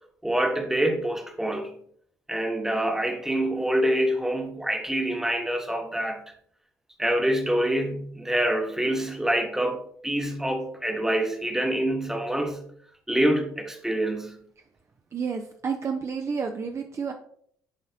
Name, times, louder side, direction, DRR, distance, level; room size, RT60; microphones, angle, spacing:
voice 1, 0.2-1.8 2.3-6.3 7.0-12.6 13.1-14.3, right 1 dB, 5° right, 1.2 m, -26 dB
voice 2, 15.1-17.1, right 5 dB, 35° right, 0.6 m, -30 dB
10.5 x 3.9 x 2.8 m
figure-of-eight pair, 45°, 9 cm